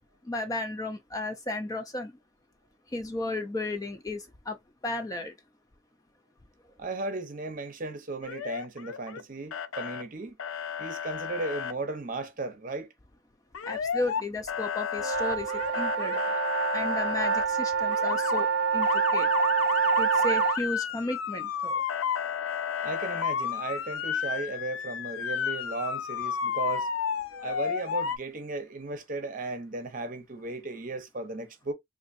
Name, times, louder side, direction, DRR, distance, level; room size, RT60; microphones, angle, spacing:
voice 1, 0.2-2.1 2.9-4.6 4.8-5.3 13.6-16.3 16.7-19.3 20.0-21.8 27.3-27.5, left 2 dB, 15° left, 0.3 m, -34 dB
voice 2, 6.8-10.4 10.8-12.9 22.8-26.9 27.4-31.7, right 3 dB, 40° right, 0.7 m, -36 dB
Motor vehicle (road) / Siren, 8.2-9.2 9.5-10.0 10.4-11.7 13.5-14.2 14.5-17.5 17.9-18.4 18.8-28.2, left 7 dB, 85° left, 0.4 m, -32 dB
sound 1, 15.0-20.6, right 6 dB, 80° right, 0.3 m, -26 dB
3.8 x 2.5 x 2.5 m
head